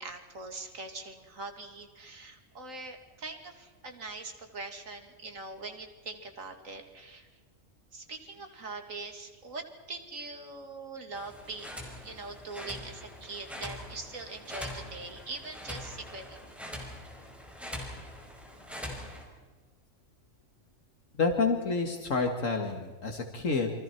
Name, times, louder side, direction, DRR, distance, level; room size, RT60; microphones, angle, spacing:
voice 1, 0.0-7.3 7.9-11.7 12.0-16.5, right 3 dB, 80° right, 5 dB, 2.7 m, -42 dB
sound 1, 11.1-19.2, left 1 dB, ahead, 5.5 m, -43 dB
voice 2, 21.1-23.7, left 4 dB, 70° left, 3 dB, 2.1 m, -29 dB
29.0 x 24.5 x 4.5 m, 1.4 s
omnidirectional pair, 1.4 m